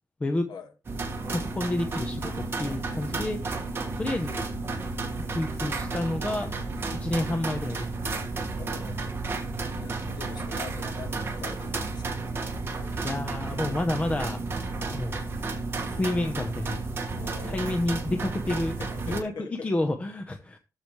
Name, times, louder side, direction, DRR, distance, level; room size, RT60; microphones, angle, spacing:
sound 1, 0.8-19.2, right 3 dB, 35° right, 1.8 m, -32 dB
voice 1, 1.3-3.4 4.0-4.5 5.3-6.5 7.0-7.9 13.0-14.4 14.9-15.3 15.8-16.8 17.4-18.8 19.1-20.6, left 1 dB, 20° left, 0.9 m, -29 dB
voice 2, 2.8-3.1 8.6-9.0 9.8-12.2 17.1-17.8 18.5-19.7, left 6 dB, 80° left, 1.9 m, -44 dB
14.0 x 5.0 x 3.2 m
wide cardioid pair, 175°, 7 cm